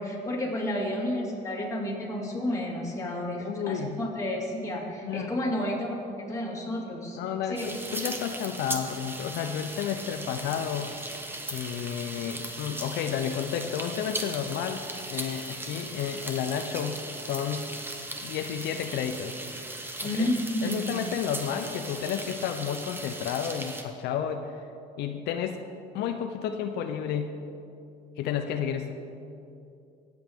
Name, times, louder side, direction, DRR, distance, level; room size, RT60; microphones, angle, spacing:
voice 1, 0.0-7.2 7.5-7.6 20.0-21.0, left 1 dB, 20° left, -3 dB, 2.4 m, -31 dB
voice 2, 3.4-4.0 5.0-5.4 7.2-10.9 11.5-17.7 18.2-19.4 20.0-20.3 20.6-24.6 25.0-25.6 25.9-27.4 28.2-28.9, left 8 dB, 80° left, 6 dB, 0.6 m, -31 dB
sound 1, 7.6-23.8, right 1 dB, 10° right, 1.0 m, -38 dB
17.0 x 7.8 x 3.6 m, 2.6 s
cardioid pair, 110°, 17 cm